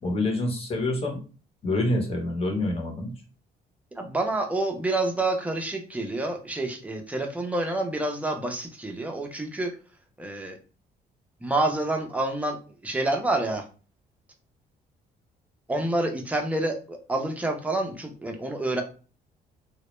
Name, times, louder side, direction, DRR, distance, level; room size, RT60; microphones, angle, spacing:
voice 1, 0.0-1.2 1.6-3.1, left 2 dB, 35° left, 2 dB, 0.8 m, -26 dB
voice 2, 4.0-9.7 10.2-10.6 11.4-13.6 15.7-18.8, right 2 dB, 10° right, 3 dB, 0.4 m, -28 dB
2.1 x 2.0 x 3.0 m, 0.36 s
cardioid pair, 115°, 17 cm